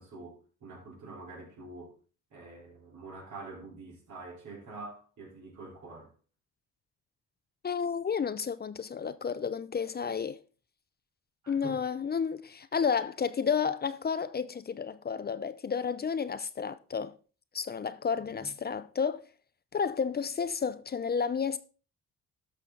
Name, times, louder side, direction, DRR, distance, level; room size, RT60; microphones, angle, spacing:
voice 1, 0.0-2.0 2.3-6.1 11.4-11.8 18.2-18.5, right 3 dB, 70° right, 4.2 m, -46 dB
voice 2, 7.6-10.4 11.5-17.2 17.5-19.3 19.7-21.6, left 6 dB, 30° left, 0.6 m, -31 dB
11.5 x 6.2 x 3.9 m
cardioid pair, 90°, 30 cm